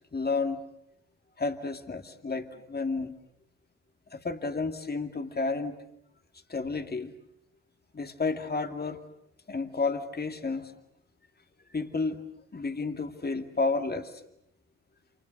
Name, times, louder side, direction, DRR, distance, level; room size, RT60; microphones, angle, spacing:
voice 1, 0.1-0.6 1.4-3.1 4.1-5.8 6.5-7.1 7.9-9.0 9.5-10.7 11.7-12.2 12.5-14.2, left 3 dB, 25° left, 7 dB, 2.5 m, -31 dB
28.0 x 28.0 x 6.8 m, 0.77 s
hypercardioid pair, 45°, 37 cm